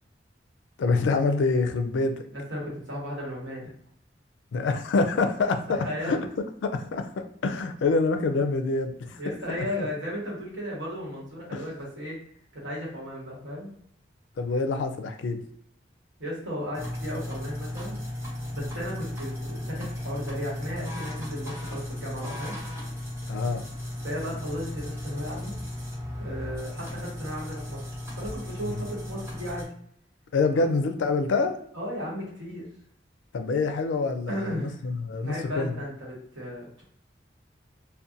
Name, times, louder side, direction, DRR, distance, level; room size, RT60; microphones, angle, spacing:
voice 1, 0.8-2.2 4.5-6.2 6.6-9.2 11.5-11.6 14.4-15.4 23.3-23.6 28.7-28.8 30.3-31.6 33.3-35.7, left 3 dB, 80° left, 7 dB, 0.4 m, -26 dB
voice 2, 2.3-3.7 5.7-6.2 9.1-12.2 12.5-13.7 16.2-18.0 18.5-22.6 24.0-25.6 26.1-27.9 28.2-29.7 31.7-32.7 34.3-34.8 35.2-36.8, equal, 90° right, -4 dB, 1.1 m, -35 dB
sound 1, 16.7-29.6, left 1 dB, 15° right, 0.6 m, -35 dB
2.6 x 2.1 x 2.4 m, 0.67 s
head